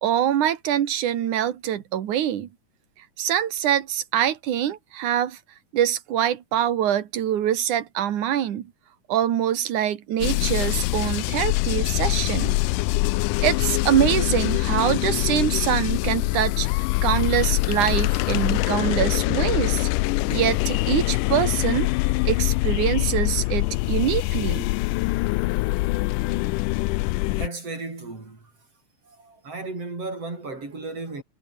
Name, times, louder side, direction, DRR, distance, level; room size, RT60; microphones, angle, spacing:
voice 1, 0.0-2.5 3.2-5.4 5.7-8.7 9.1-12.6 13.4-19.9 20.3-21.9 22.2-24.7, right 10 dB, 70° right, 3.0 m, -24 dB
sound 1, 10.2-27.5, left 21 dB, 80° left, 2.1 m, -24 dB
voice 2, 27.4-28.4 29.1-31.2, right 3 dB, 45° right, 7.4 m, -35 dB
omnidirectional pair, 3.8 m